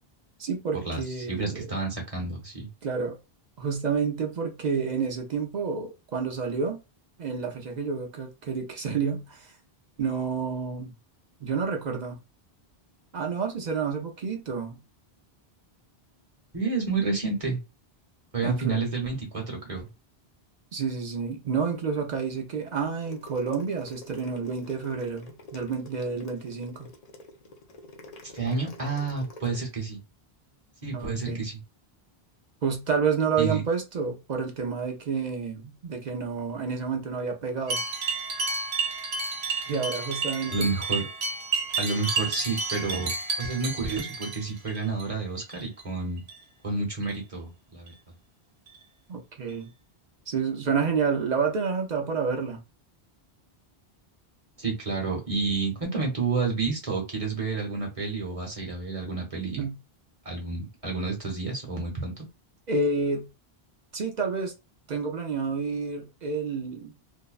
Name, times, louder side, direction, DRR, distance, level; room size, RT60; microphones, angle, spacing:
voice 1, 0.4-1.7 2.8-3.2 3.6-6.8 7.2-9.5 10.0-10.9 11.4-12.2 13.1-14.8 18.4-18.8 20.7-26.9 30.9-31.4 32.6-37.8 39.7-40.7 42.3-42.4 49.1-49.7 50.3-52.6 59.6-59.8 62.7-63.3 63.9-64.5 64.9-66.9, right 5 dB, 50° right, 0.6 m, -29 dB
voice 2, 1.3-2.7 16.5-17.6 18.3-19.9 28.3-30.0 30.8-31.6 33.4-33.6 40.5-41.1 41.8-46.2 46.6-47.9 54.6-59.7 60.2-62.3, right 4 dB, 35° right, 1.0 m, -30 dB
sound 1, 22.9-29.6, left 2 dB, 50° left, 0.5 m, -47 dB
sound 2, 37.7-45.0 45.4-45.8 46.2-46.4 47.0-47.2 47.9-48.0 48.7-48.8 49.5-49.6, right 4 dB, 90° right, 1.0 m, -31 dB
2.6 x 2.1 x 2.3 m
omnidirectional pair, 1.0 m